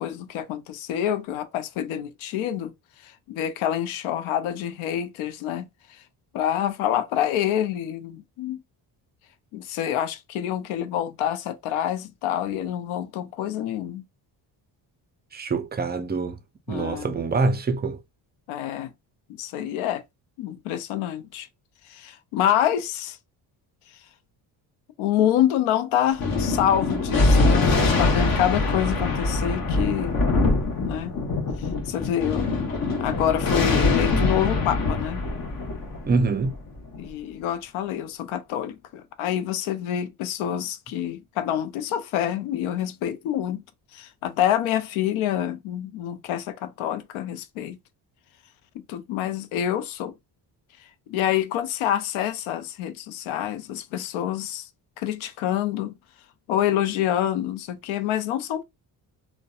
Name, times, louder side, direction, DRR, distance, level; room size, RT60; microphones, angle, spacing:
voice 1, 0.0-2.7 3.0-6.0 6.3-8.6 9.5-14.0 16.7-17.2 18.5-18.9 19.4-20.0 20.4-21.5 21.9-23.2 25.0-30.2 30.8-31.1 31.6-32.5 33.0-35.3 37.0-43.6 43.9-47.8 48.7-50.1 51.1-54.7 55.0-56.0 56.5-58.6, left 11 dB, 85° left, 0.5 m, -27 dB
voice 2, 15.3-16.4 16.7-18.0 36.0-36.5, right 3 dB, 25° right, 0.4 m, -25 dB
Thunder, 26.2-37.0, left 3 dB, 45° left, 0.9 m, -23 dB
2.6 x 2.2 x 2.3 m
cardioid pair, 80°, 47 cm